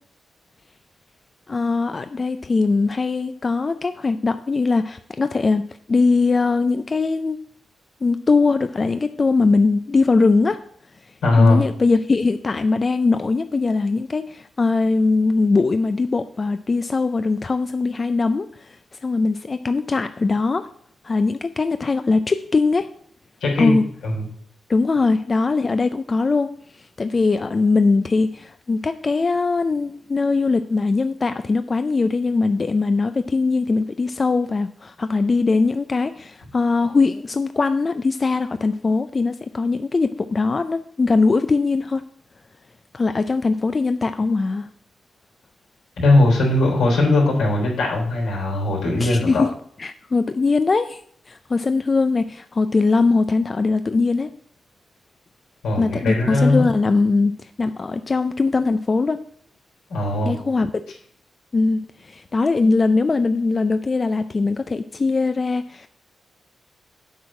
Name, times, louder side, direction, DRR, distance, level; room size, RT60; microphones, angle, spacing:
voice 1, 1.5-7.4 8.0-10.6 11.4-18.8 19.0-20.7 21.0-22.9 23.6-23.8 24.7-42.0 42.9-44.7 49.0-49.5 49.8-51.0 51.3-54.3 55.8-59.2 60.2-61.0 61.5-65.9, left 3 dB, 40° left, 10 dB, 0.5 m, -21 dB
voice 2, 11.2-11.6 23.4-23.8 24.0-24.3 46.0-49.4 55.6-56.7 59.9-60.4, left 2 dB, 90° left, -2 dB, 3.6 m, -19 dB
8.2 x 4.7 x 7.4 m, 0.63 s
cardioid pair, 55°, 0 cm